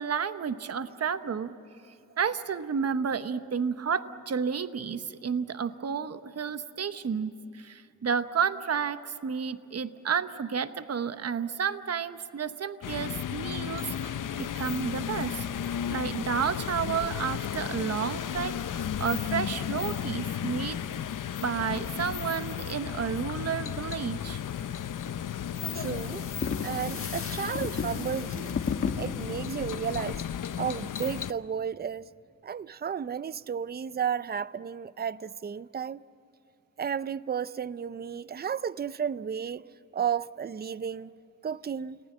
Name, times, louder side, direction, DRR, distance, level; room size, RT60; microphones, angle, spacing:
voice 1, 0.0-1.6 1.8-20.8 21.4-24.4, right 6 dB, 50° right, 1.0 m, -31 dB
sound 1, 12.8-31.3, left 9 dB, 70° left, 0.8 m, -34 dB
sound 2, 25.6-30.4, left 5 dB, 40° left, 1.4 m, -35 dB
voice 2, 25.7-26.3 26.6-28.6 29.0-30.3 30.6-32.1 32.4-36.0 36.8-39.6 39.9-41.1 41.4-42.0, right 7 dB, 30° right, 0.5 m, -33 dB
30.0 x 19.0 x 7.4 m
wide cardioid pair, 110°, 33 cm